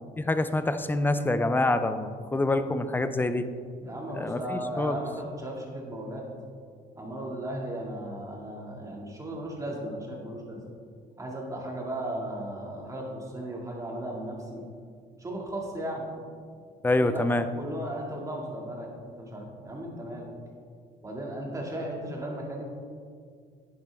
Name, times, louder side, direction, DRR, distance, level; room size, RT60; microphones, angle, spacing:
voice 1, 0.2-3.5 4.1-5.0 16.8-17.5, left 2 dB, 10° left, 10 dB, 0.6 m, -26 dB
voice 2, 3.8-6.3 6.9-10.6 11.2-14.6 15.2-16.1 16.9-17.2 17.6-18.9 19.2-20.3 21.0-22.6, right 1 dB, 20° right, -1 dB, 2.2 m, -36 dB
10.5 x 10.5 x 3.5 m, 2.1 s
cardioid pair, 110°, 17 cm